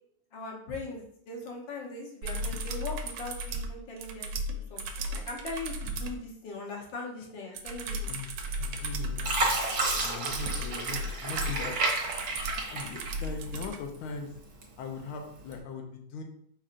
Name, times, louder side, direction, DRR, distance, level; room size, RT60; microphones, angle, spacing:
voice 1, 0.3-8.1, left 3 dB, 65° left, -1 dB, 1.7 m, -40 dB
sound 1, 2.2-6.2 7.5-13.8 15.5-15.6, right 1 dB, 80° right, 1.4 m, -35 dB
Fill (with liquid), 8.5-8.8 9.2-13.6 14.1-14.9 15.4-15.6, right 3 dB, 60° right, 1.4 m, -31 dB
voice 2, 8.6-9.6 10.0-11.8 12.1-12.4 12.7-14.3 14.8-16.2, left 4 dB, 85° left, 4 dB, 1.6 m, -40 dB
4.8 x 4.3 x 2.5 m, 0.70 s
omnidirectional pair, 2.3 m